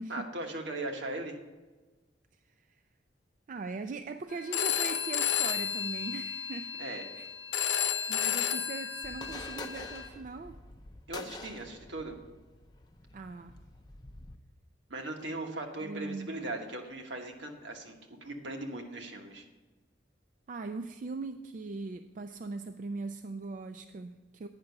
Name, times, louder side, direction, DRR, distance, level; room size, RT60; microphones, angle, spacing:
voice 1, 0.1-1.4 6.8-7.0 11.1-12.2 14.9-19.4, right 2 dB, 75° right, 3 dB, 1.3 m, -39 dB
voice 2, 3.5-6.8 7.2-7.3 7.8-10.6 13.1-13.6 15.8-16.3 20.5-24.5, right 3 dB, 45° right, 8 dB, 0.3 m, -40 dB
Telephone, 4.5-10.1, left 9 dB, 85° left, 0.8 m, -32 dB
sound 1, 9.0-14.4, left 2 dB, 20° left, 0.5 m, -47 dB
8.9 x 5.8 x 6.5 m, 1.2 s
head